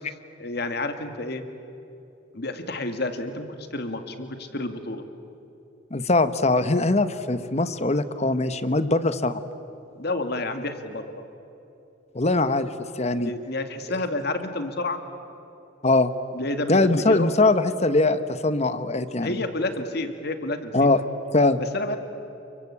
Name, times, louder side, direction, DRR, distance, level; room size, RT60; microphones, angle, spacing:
voice 1, 0.4-1.4 2.3-3.5 3.7-5.0 10.0-11.1 13.2-15.0 16.3-17.3 19.2-20.9 21.7-22.0, left 2 dB, 60° left, 7 dB, 2.2 m, -30 dB
voice 2, 5.9-9.4 12.1-13.3 15.8-16.1 16.7-19.4 20.7-21.0 21.3-21.6, left 2 dB, 35° left, 12 dB, 1.1 m, -22 dB
29.5 x 23.0 x 8.6 m, 2.9 s
head